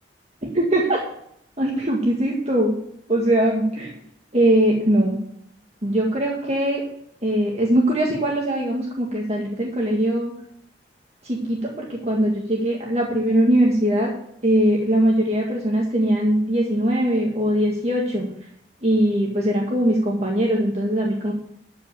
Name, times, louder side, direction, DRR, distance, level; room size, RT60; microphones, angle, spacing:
voice 1, 0.4-1.0 1.6-2.7 3.1-3.9 4.3-5.2 5.8-6.8 7.2-10.3 11.2-14.1 14.4-18.3 18.8-21.3, right 1 dB, 40° right, -2 dB, 1.9 m, -21 dB
13.0 x 5.2 x 8.5 m, 0.72 s
head